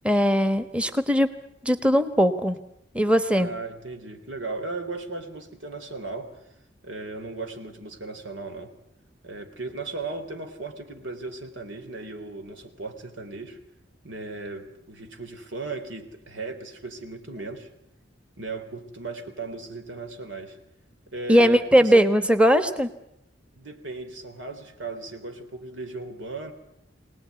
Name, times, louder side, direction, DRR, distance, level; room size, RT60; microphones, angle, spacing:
voice 1, 0.0-1.3 1.6-2.6 2.9-3.5 21.3-22.9, equal, 5° right, 10 dB, 1.2 m, -19 dB
voice 2, 3.3-6.3 6.8-8.7 9.2-13.6 14.0-17.7 18.4-20.6 21.1-22.0 23.6-26.5, right 3 dB, 90° right, 6 dB, 3.7 m, -36 dB
25.5 x 18.5 x 9.6 m, 0.80 s
head